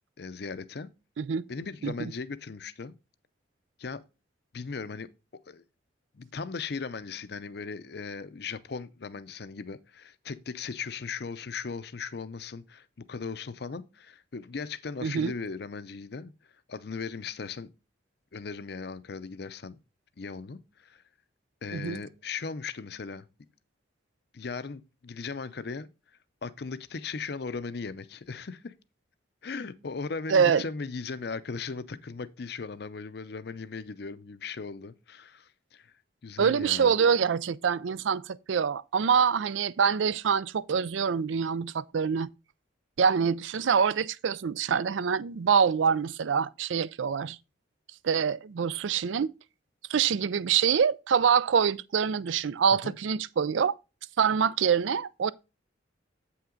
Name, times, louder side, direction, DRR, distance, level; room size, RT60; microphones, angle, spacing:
voice 1, 0.2-0.9 1.5-2.9 3.8-4.0 4.5-5.1 5.5-5.6 6.1-16.3 16.7-17.7 18.3-19.8 20.2-21.0 21.6-23.3 24.3-25.9 26.4-28.7 29.4-35.9 36.2-36.9 52.8-52.9, left 4 dB, 60° left, 0.5 m, -38 dB
voice 2, 15.0-15.3 21.7-22.0 30.3-30.6 36.4-42.3 43.0-47.4 48.0-49.3 49.9-53.7 54.2-55.3, right 6 dB, 85° right, 0.4 m, -25 dB
8.1 x 5.7 x 3.8 m
head